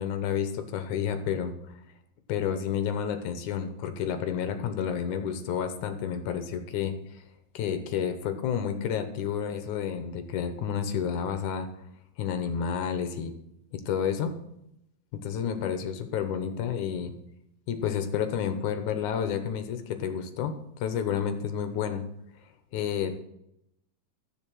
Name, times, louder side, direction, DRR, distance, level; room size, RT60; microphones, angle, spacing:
voice 1, 0.0-1.5 2.3-6.9 7.5-11.7 12.2-13.3 13.7-14.3 15.1-17.1 17.7-20.6 20.8-22.0 22.7-23.2, left 8 dB, 70° left, 8 dB, 2.1 m, -30 dB
12.5 x 7.0 x 6.2 m, 0.81 s
omnidirectional pair, 4.1 m